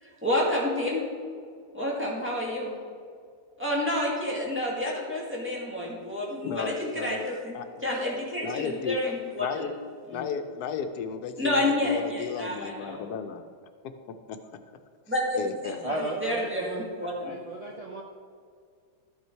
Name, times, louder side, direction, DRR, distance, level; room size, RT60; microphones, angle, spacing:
voice 1, 0.0-1.1 1.7-2.8 3.6-7.6 7.8-9.7 10.1-10.3 11.4-13.0 15.1-15.7 16.2-17.3, left 1 dB, 10° right, -5 dB, 1.9 m, -29 dB
voice 2, 6.4-7.2 7.5-7.7 8.4-9.1 9.4-9.7 10.1-13.4 13.8-14.0 14.3-14.4 15.4-15.8, left 6 dB, 80° left, 8 dB, 1.2 m, -34 dB
voice 3, 15.8-18.0, right 1 dB, 65° right, -1 dB, 0.3 m, -35 dB
12.5 x 5.7 x 4.5 m, 2.1 s
omnidirectional pair, 1.7 m